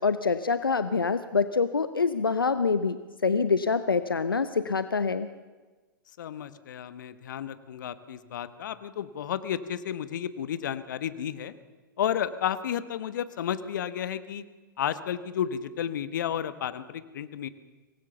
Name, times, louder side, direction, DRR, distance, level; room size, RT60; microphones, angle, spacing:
voice 1, 0.0-3.0 3.2-5.3, left 5 dB, 85° left, 12 dB, 0.8 m, -25 dB
voice 2, 6.2-11.5 12.0-14.4 14.8-17.5, left 9 dB, 60° left, 14 dB, 1.2 m, -32 dB
24.5 x 18.5 x 6.9 m, 1.3 s
figure-of-eight pair, 105°, 11 cm